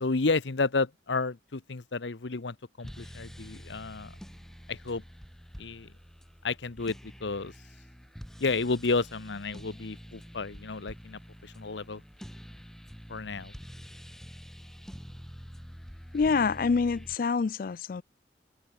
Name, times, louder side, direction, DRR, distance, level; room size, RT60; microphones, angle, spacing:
voice 1, 0.0-4.1 4.7-5.0 5.6-5.9 6.4-7.5 8.4-12.0 13.1-13.5, left 3 dB, 85° left, 0.9 m, -31 dB
sound 1, 2.8-17.2, equal, ahead, 2.1 m, -47 dB
voice 2, 16.1-18.0, left 5 dB, 50° left, 0.4 m, -26 dB
head